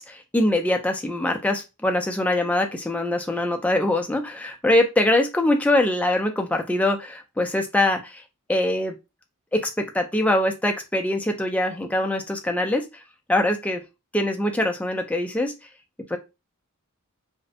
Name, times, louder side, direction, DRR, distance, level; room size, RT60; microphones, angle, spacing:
voice 1, 0.0-8.2 8.5-8.9 9.5-13.0 13.3-13.8 14.1-15.5 16.1-16.2, left 1 dB, 5° left, 4 dB, 0.3 m, -23 dB
2.6 x 2.0 x 2.5 m, 0.25 s
head